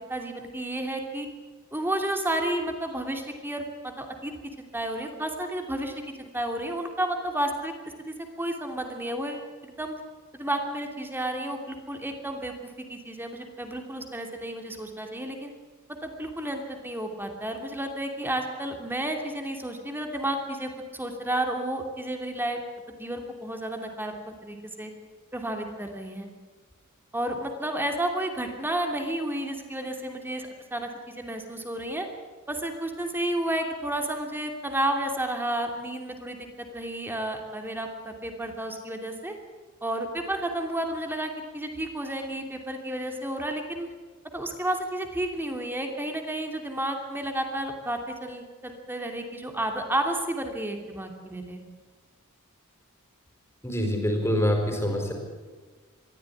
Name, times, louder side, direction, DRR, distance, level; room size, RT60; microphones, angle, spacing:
voice 1, 0.1-1.3 1.7-4.3 4.6-7.7 8.1-9.9 10.3-12.5 12.9-15.5 16.0-22.6 22.9-24.9 25.3-26.3 27.1-32.1 32.5-39.3 39.8-43.9 44.3-51.6, right 1 dB, 10° right, 4 dB, 2.8 m, -31 dB
voice 2, 53.6-55.1, equal, 10° left, 3 dB, 4.7 m, -25 dB
23.0 x 14.5 x 9.9 m, 1.4 s
head